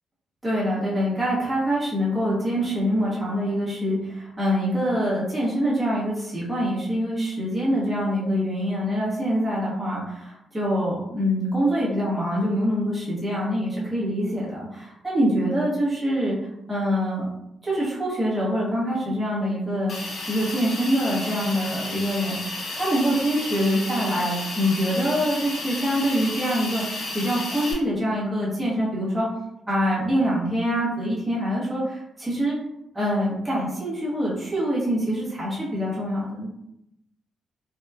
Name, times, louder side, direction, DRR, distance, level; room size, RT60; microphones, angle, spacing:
voice 1, 0.4-16.4 16.7-17.3 17.6-29.3 29.7-32.6 32.9-36.5, equal, 10° right, -8 dB, 0.9 m, -25 dB
Hiss, 19.9-27.7, left 2 dB, 60° left, 0.6 m, -33 dB
2.7 x 2.2 x 2.3 m, 0.83 s
cardioid pair, 135°, 0 cm